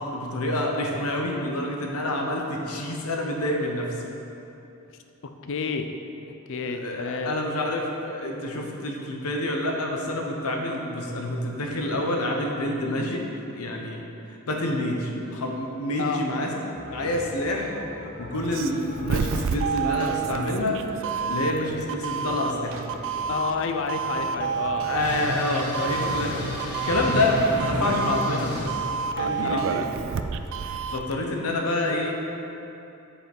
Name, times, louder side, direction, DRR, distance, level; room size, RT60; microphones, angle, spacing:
voice 1, 0.0-4.1 6.7-13.2 13.5-16.5 16.9-17.7 18.2-20.8 21.3-22.8 24.8-28.8 29.2-29.9 30.6-32.1, left 1 dB, 85° left, 1 dB, 0.9 m, -27 dB
voice 2, 5.4-5.9 6.5-7.3 16.0-16.2 23.3-24.9 29.4-29.7, left 4 dB, 60° left, 6 dB, 0.5 m, -29 dB
sound 1, 16.7-30.3, equal, 30° right, 1.2 m, -42 dB
Doorbell, 18.3-31.1, right 6 dB, 60° right, 0.3 m, -30 dB
sound 2, 25.0-28.6, equal, 5° right, 1.5 m, -31 dB
7.4 x 5.1 x 4.5 m, 2.8 s
head